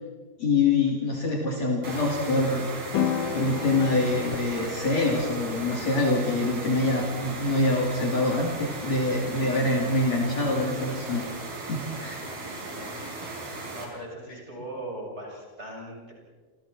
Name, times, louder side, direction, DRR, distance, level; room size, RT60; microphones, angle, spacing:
voice 1, 0.4-2.7 3.3-11.2 11.7-12.2, left 2 dB, 45° left, -1 dB, 4.0 m, -25 dB
sound 1, 1.8-13.9, right 2 dB, 75° right, 6.5 m, -37 dB
sound 2, 2.9-11.4, left 8 dB, 65° left, 2.6 m, -36 dB
voice 2, 12.4-13.1 13.7-16.1, right 1 dB, 15° right, -2 dB, 7.6 m, -40 dB
28.5 x 28.5 x 4.6 m, 1.4 s
omnidirectional pair, 4.3 m